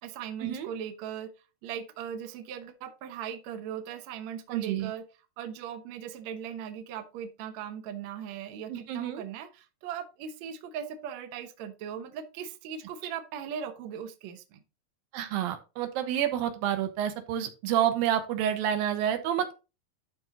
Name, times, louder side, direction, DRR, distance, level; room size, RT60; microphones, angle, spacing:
voice 1, 0.0-1.3 1.6-5.0 5.4-14.6, right 8 dB, 65° right, 7 dB, 1.9 m, -39 dB
voice 2, 4.5-4.9 8.7-9.2 15.1-19.5, right 10 dB, 80° right, 8 dB, 2.8 m, -29 dB
11.5 x 4.3 x 3.8 m, 0.29 s
omnidirectional pair, 4.1 m